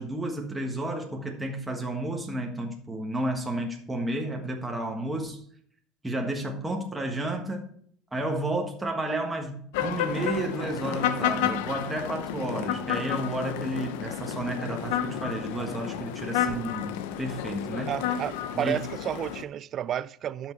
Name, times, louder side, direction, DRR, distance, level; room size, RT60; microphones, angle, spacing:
voice 1, 0.0-5.4 6.0-7.7 8.1-18.0 18.5-18.8, right 1 dB, 10° right, 1.5 m, -32 dB
sound 1, 9.7-19.4, left 9 dB, 85° left, 0.7 m, -31 dB
voice 2, 17.9-20.5, right 10 dB, 40° right, 0.4 m, -31 dB
12.0 x 6.2 x 4.5 m
cardioid pair, 140°, 0 cm